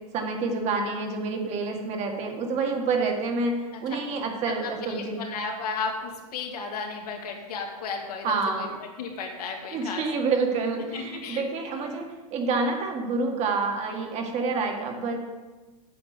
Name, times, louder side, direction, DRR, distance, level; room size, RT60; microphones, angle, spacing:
voice 1, 0.1-5.2 8.2-8.7 9.7-15.2, right 4 dB, 35° right, 2 dB, 1.9 m, -28 dB
voice 2, 4.5-10.0 10.9-11.4, left 4 dB, 80° left, 2 dB, 2.3 m, -34 dB
8.7 x 8.7 x 5.2 m, 1.2 s
supercardioid pair, 135°, 20 cm